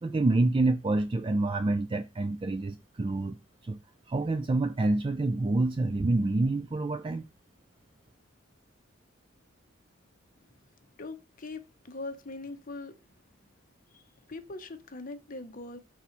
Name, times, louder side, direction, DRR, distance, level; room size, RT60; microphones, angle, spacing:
voice 1, 0.0-3.4 3.6-3.8 4.1-7.3, right 2 dB, 25° right, 0.4 m, -27 dB
voice 2, 11.0-12.9 13.9-15.8, left 2 dB, 45° left, 0.9 m, -41 dB
5.7 x 4.2 x 4.5 m
head